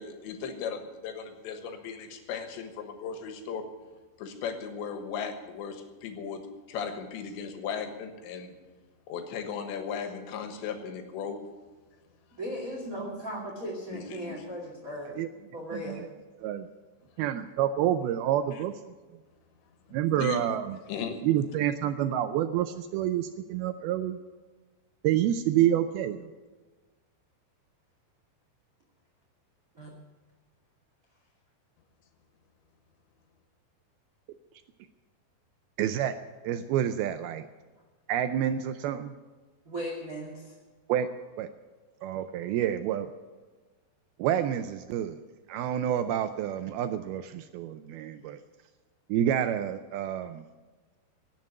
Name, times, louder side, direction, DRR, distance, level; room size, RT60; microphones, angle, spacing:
voice 1, 0.0-3.7 4.2-6.4 6.7-8.6 9.1-11.4 13.9-14.4 19.9-20.4 20.9-21.2, left 6 dB, 85° left, 7 dB, 3.6 m, -36 dB
voice 2, 12.3-16.0 29.7-29.9 39.7-40.5, equal, 25° right, -2 dB, 1.9 m, -37 dB
voice 3, 17.2-18.7 19.9-20.8 21.2-24.2 25.0-26.3 35.8-36.2 36.4-37.5 38.1-39.1 40.9-41.1 41.4-41.5 42.0-43.1 44.2-45.2 45.5-48.4 49.1-50.4, right 11 dB, 85° right, 10 dB, 2.2 m, -28 dB
17.0 x 7.6 x 9.4 m, 1.3 s
omnidirectional pair, 5.0 m